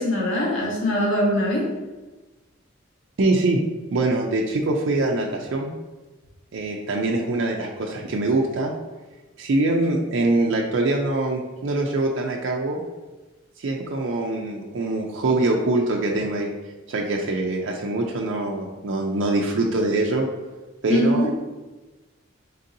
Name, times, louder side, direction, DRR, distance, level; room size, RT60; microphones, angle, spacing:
voice 1, 0.0-1.7 20.9-21.3, equal, 70° left, -4 dB, 1.2 m, -22 dB
voice 2, 3.2-3.6 3.9-5.7 6.5-8.7 9.4-12.8 13.6-16.5 16.9-20.3 20.8-21.3, right 2 dB, 65° right, 0 dB, 0.4 m, -23 dB
3.9 x 3.6 x 2.7 m, 1.2 s
head